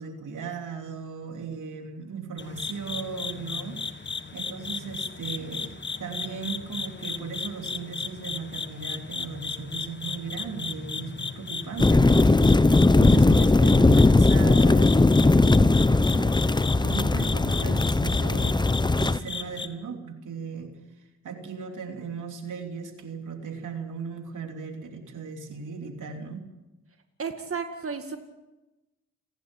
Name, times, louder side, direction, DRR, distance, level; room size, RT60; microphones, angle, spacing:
voice 1, 0.0-3.9 4.3-12.7 13.0-15.8 16.1-18.6 18.9-20.7 21.2-26.4, right 5 dB, 75° right, 4 dB, 3.1 m, -37 dB
sound 1, 2.4-19.7, left 4 dB, 35° left, 1.6 m, -35 dB
sound 2, 11.8-19.2, left 2 dB, 15° left, 0.7 m, -19 dB
voice 2, 27.2-28.2, right 5 dB, 45° right, 6 dB, 2.1 m, -32 dB
29.5 x 11.5 x 9.0 m, 1.0 s
cardioid pair, 55°, 31 cm